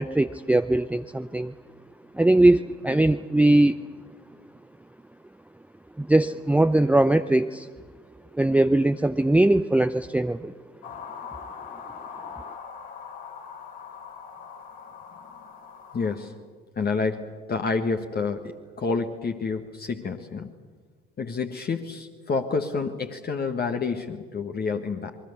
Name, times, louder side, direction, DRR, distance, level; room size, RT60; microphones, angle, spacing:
voice 1, 0.0-1.5 2.1-3.8 6.0-7.7 8.3-10.5, right 1 dB, 5° right, 11 dB, 0.6 m, -20 dB
sound 1, 10.8-16.2, left 6 dB, 65° left, 5.6 m, -41 dB
voice 2, 15.9-16.4 16.8-20.5 21.2-25.2, left 4 dB, 35° left, 4 dB, 1.6 m, -29 dB
27.5 x 22.0 x 6.9 m, 1.5 s
figure-of-eight pair, 55°, 29 cm